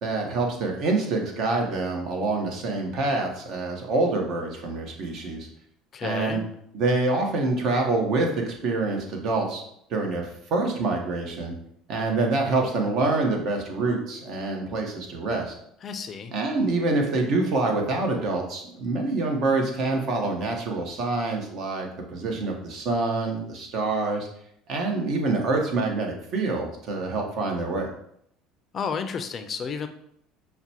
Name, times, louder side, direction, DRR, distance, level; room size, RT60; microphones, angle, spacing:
voice 1, 0.0-5.5 6.0-6.4 6.7-9.6 9.9-11.5 11.9-15.5 16.3-24.3 24.7-27.9, right 3 dB, 60° right, 2 dB, 0.9 m, -26 dB
voice 2, 5.9-6.4 15.8-16.3 28.7-29.9, left 6 dB, 40° left, 9 dB, 0.4 m, -31 dB
5.8 x 2.1 x 2.8 m, 0.70 s
supercardioid pair, 95°, 0 cm